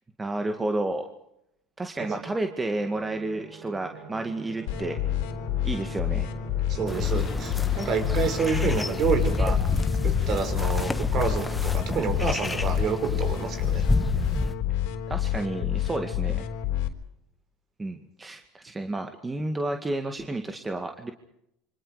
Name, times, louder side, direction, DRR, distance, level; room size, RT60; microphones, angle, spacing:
voice 1, 0.2-1.1 1.8-5.0 5.6-6.3 15.1-16.5 17.8-21.1, right 2 dB, 15° right, 5 dB, 2.1 m, -31 dB
sound 1, 2.7-9.4, right 5 dB, 70° right, 6.8 m, -44 dB
sound 2, 4.7-16.9, left 11 dB, 75° left, 3.8 m, -28 dB
voice 2, 6.7-9.6 10.0-13.8, right 5 dB, 45° right, 7 dB, 6.2 m, -28 dB
sound 3, 6.9-14.5, left 3 dB, 10° left, 1.5 m, -29 dB
28.0 x 25.5 x 5.0 m, 0.78 s
supercardioid pair, 125°, 0 cm